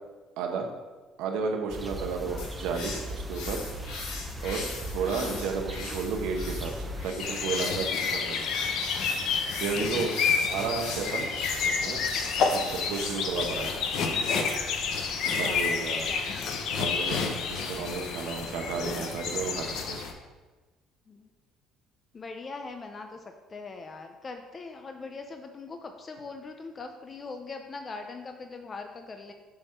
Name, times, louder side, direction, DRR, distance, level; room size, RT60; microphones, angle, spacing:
voice 1, 0.4-0.7 1.2-3.6 4.4-8.5 9.6-10.1 10.5-11.3 11.7-12.0 12.4-13.7 15.4-16.1 16.7-20.0, right 5 dB, 75° right, 3 dB, 1.1 m, -33 dB
sound 1, 1.7-7.1, equal, 15° right, 0.7 m, -38 dB
sound 2, 2.4-14.4, left 3 dB, 85° left, 1.7 m, -41 dB
sound 3, 7.2-20.1, left 5 dB, 65° left, 0.8 m, -29 dB
voice 2, 15.4-15.8 16.1-16.5 21.1-21.3 22.1-29.3, left 4 dB, 30° left, 5 dB, 0.6 m, -41 dB
6.9 x 3.6 x 5.7 m, 1.3 s
supercardioid pair, 95°, 0 cm